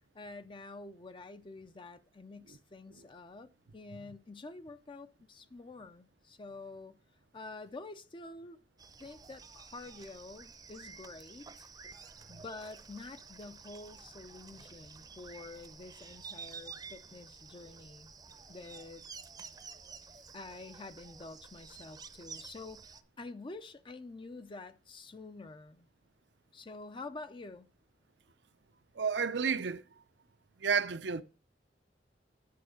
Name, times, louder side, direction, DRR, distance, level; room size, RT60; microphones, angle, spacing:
voice 1, 0.1-7.0 7.3-8.6 9.0-11.7 12.3-18.1 18.5-19.0 20.3-25.9 26.5-27.7, left 3 dB, 30° left, 0.5 m, -48 dB
sound 1, 8.8-23.0, right 5 dB, 20° right, 0.7 m, -51 dB
voice 2, 29.0-29.8 30.6-31.2, right 6 dB, 80° right, 0.7 m, -31 dB
10.5 x 4.6 x 6.4 m
head